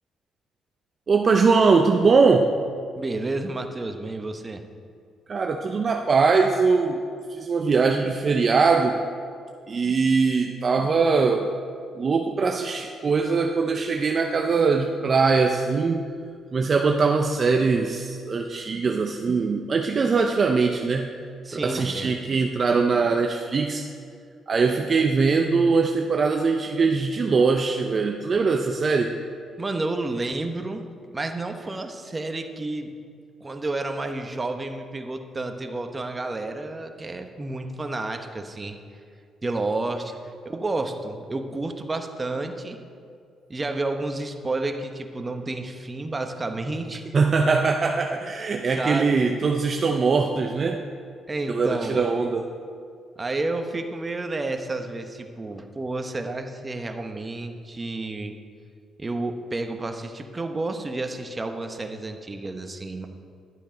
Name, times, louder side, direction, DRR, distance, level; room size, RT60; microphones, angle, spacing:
voice 1, 1.1-2.5 5.3-7.0 7.3-9.0 9.7-11.5 11.9-16.0 16.5-21.1 21.5-23.9 24.5-29.1 47.1-50.8 51.5-52.5, right 4 dB, 40° right, 3 dB, 0.6 m, -21 dB
voice 2, 3.0-4.6 21.4-22.1 29.6-30.8 31.1-32.9 33.4-38.8 39.4-40.1 40.4-42.8 43.5-47.2 48.8-49.6 51.3-52.0 53.2-58.4 59.0-63.1, right 2 dB, 25° right, 5 dB, 1.0 m, -30 dB
11.5 x 8.3 x 5.1 m, 2.3 s
cardioid pair, 90°, 0 cm